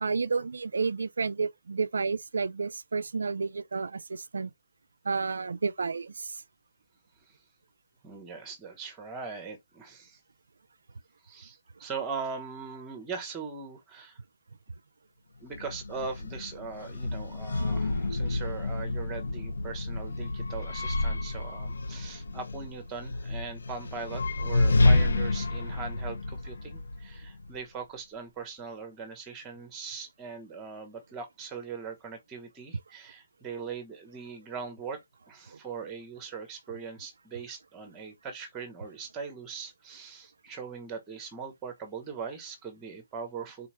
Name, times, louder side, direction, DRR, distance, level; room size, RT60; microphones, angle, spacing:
voice 1, 0.0-4.5 5.0-6.4, right 4 dB, 85° right, 0.4 m, -31 dB
voice 2, 8.0-10.2 11.2-14.2 15.4-35.0 35.3-43.7, right 5 dB, 10° right, 0.8 m, -40 dB
sound 1, 15.5-27.6, left 2 dB, 85° left, 0.6 m, -29 dB
3.9 x 2.2 x 3.0 m
hypercardioid pair, 180°, 0 cm